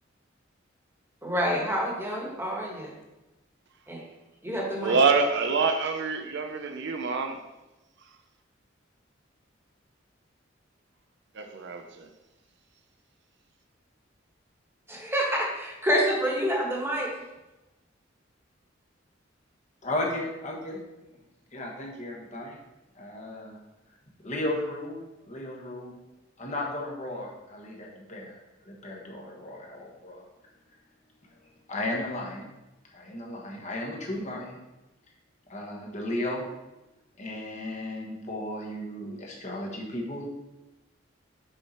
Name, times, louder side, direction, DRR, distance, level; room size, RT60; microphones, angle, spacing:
voice 1, 1.2-2.9 3.9-4.0 4.4-5.0 14.9-17.1, equal, 15° right, 1.5 m, -27 dB
voice 2, 4.8-7.4 11.3-12.1, right 4 dB, 65° right, 0.6 m, -26 dB
voice 3, 19.8-20.8 21.5-22.6 22.9-23.6 24.2-25.0 25.3-25.9 26.4-28.4 28.6-30.2 31.7-32.5 32.9-34.6 35.5-36.5 37.2-40.3, left 1 dB, 40° left, 1.3 m, -34 dB
6.4 x 4.7 x 4.2 m
head